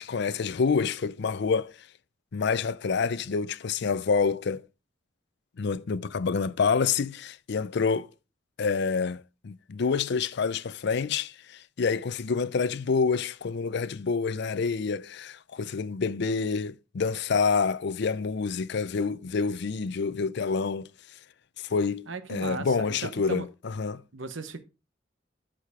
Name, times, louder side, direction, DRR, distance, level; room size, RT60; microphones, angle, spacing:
voice 1, 0.0-1.7 2.3-4.6 5.6-8.1 8.6-20.9 21.7-24.0, left 5 dB, 60° left, 0.5 m, -27 dB
voice 2, 22.1-23.5 24.1-24.6, right 3 dB, 75° right, 1.1 m, -37 dB
13.0 x 5.0 x 3.6 m
head